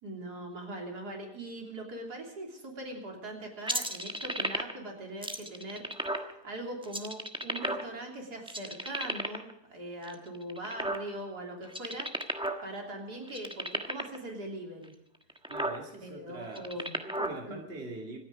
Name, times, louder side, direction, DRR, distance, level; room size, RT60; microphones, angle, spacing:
voice 1, 0.0-12.1 12.6-14.9 16.0-17.0 17.5-17.6, right 1 dB, 75° right, 1 dB, 3.8 m, -41 dB
sound 1, 3.7-4.9 5.2-6.3 6.8-8.1 8.5-9.5 10.0-11.3 11.6-12.6 12.9-13.0 13.3-14.2 14.8-14.9 15.3-15.8 16.4-17.3, right 1 dB, 5° right, 1.1 m, -33 dB
voice 2, 15.5-18.2, right 2 dB, 40° right, 1 dB, 2.5 m, -43 dB
26.0 x 9.7 x 5.0 m, 0.85 s
omnidirectional pair, 1.7 m